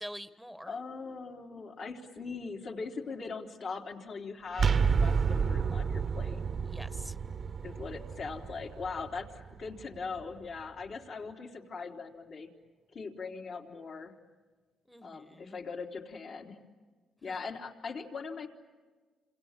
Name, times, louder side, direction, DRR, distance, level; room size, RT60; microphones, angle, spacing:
voice 1, 0.0-0.7 6.6-7.2 14.9-15.6 17.2-17.3, equal, ahead, 12 dB, 1.3 m, -45 dB
voice 2, 0.7-6.4 7.6-12.5 12.9-14.1 15.0-16.6 17.2-18.5, left 4 dB, 55° left, 2 dB, 3.7 m, -40 dB
sound 1, 4.5-10.3, right 6 dB, 45° right, 1.0 m, -30 dB
29.0 x 27.0 x 7.5 m, 1.4 s
cardioid pair, 95°, 0 cm